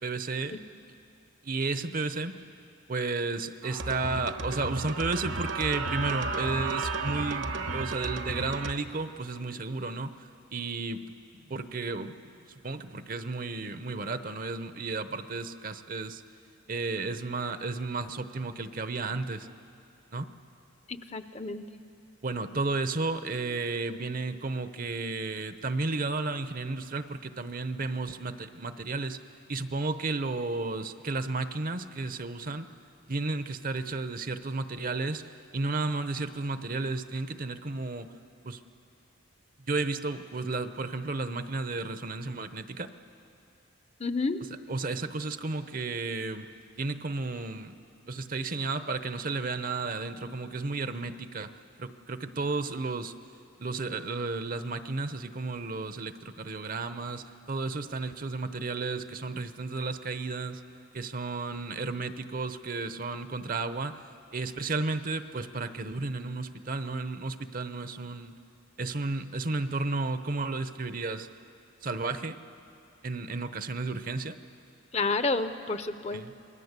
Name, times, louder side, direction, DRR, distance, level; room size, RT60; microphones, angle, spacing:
voice 1, 0.0-0.6 1.4-2.3 2.9-11.1 11.5-12.4 12.6-16.2 16.7-19.5 20.1-20.3 22.2-29.2 29.5-32.7 33.1-38.1 38.4-38.6 39.7-42.9 44.7-46.5 46.8-47.8 48.1-51.5 51.8-53.1 53.6-60.6 60.9-64.0 64.3-68.4 68.8-71.3 71.8-72.4 73.0-74.4 76.1-76.3, right 3 dB, 40° right, 11 dB, 0.8 m, -33 dB
sound 1, 3.6-8.7, right 3 dB, 65° right, 1.2 m, -33 dB
voice 2, 20.9-21.6 44.0-44.4 74.9-76.3, left 3 dB, 30° left, 11 dB, 0.7 m, -30 dB
28.0 x 20.5 x 8.2 m, 2.7 s
head